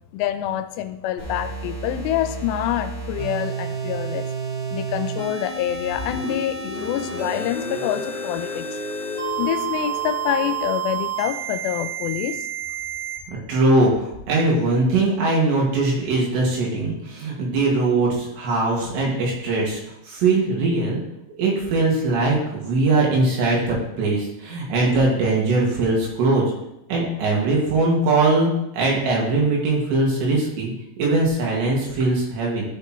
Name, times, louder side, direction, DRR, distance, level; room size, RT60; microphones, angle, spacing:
voice 1, 0.1-4.3 4.7-8.7 9.4-12.4, left 11 dB, 85° left, 9 dB, 2.7 m, -26 dB
sound 1, 1.2-13.2, right 6 dB, 35° right, 2.7 m, -30 dB
Car, 5.5-11.0, left 3 dB, 40° left, 0.8 m, -34 dB
voice 2, 13.3-19.8 20.1-21.0 21.4-26.4 26.9-32.6, right 2 dB, 75° right, -3 dB, 4.3 m, -21 dB
13.0 x 6.7 x 3.1 m, 0.85 s
omnidirectional pair, 5.1 m